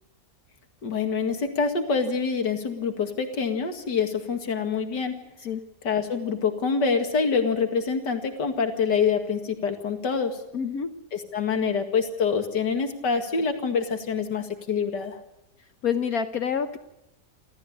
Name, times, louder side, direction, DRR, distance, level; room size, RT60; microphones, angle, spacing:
voice 1, 0.8-5.1 5.8-10.4 11.1-15.2, left 5 dB, 85° left, 6 dB, 2.7 m, -26 dB
voice 2, 10.5-10.9 15.8-16.8, left 7 dB, 60° left, 9 dB, 1.4 m, -27 dB
29.0 x 14.0 x 8.8 m, 0.88 s
omnidirectional pair, 1.8 m